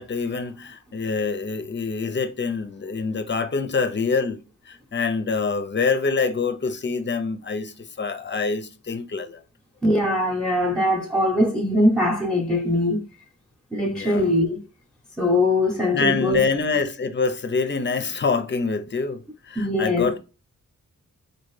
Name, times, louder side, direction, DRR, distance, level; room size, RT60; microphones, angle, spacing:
voice 1, 0.0-4.4 4.7-9.4 13.9-14.3 15.9-20.2, left 4 dB, 35° left, 0.6 m, -25 dB
voice 2, 9.8-13.0 13.7-14.6 15.2-16.5 19.6-20.2, left 1 dB, ahead, 0.9 m, -21 dB
4.2 x 2.7 x 3.1 m
cardioid pair, 70°, 33 cm